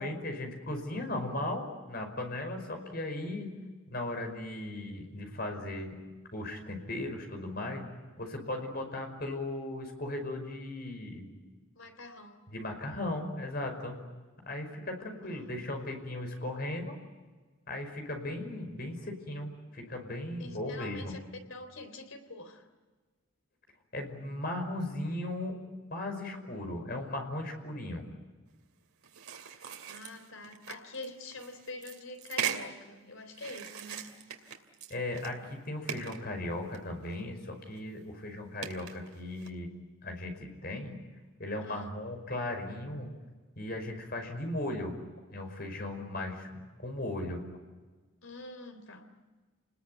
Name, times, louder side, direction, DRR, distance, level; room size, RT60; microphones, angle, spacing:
voice 1, 0.0-3.5 3.9-6.0 6.3-7.9 8.2-11.3 12.5-14.0 14.5-17.0 17.7-21.2 23.9-25.6 25.9-28.0 34.9-39.7 40.0-41.0 41.4-43.1 43.6-44.9 45.3-47.4, left 1 dB, 45° left, 4 dB, 5.3 m, -37 dB
voice 2, 11.7-12.4 15.2-15.5 20.4-21.2 21.5-22.7 29.4-34.1 41.6-42.1 48.2-49.1, left 2 dB, 70° left, 7 dB, 3.5 m, -46 dB
sound 1, 29.0-32.7 33.3-35.5 35.9-37.2 37.7-37.8 38.6-39.5, right 8 dB, 85° right, 2.7 m, -40 dB
29.5 x 21.0 x 9.4 m, 1.3 s
head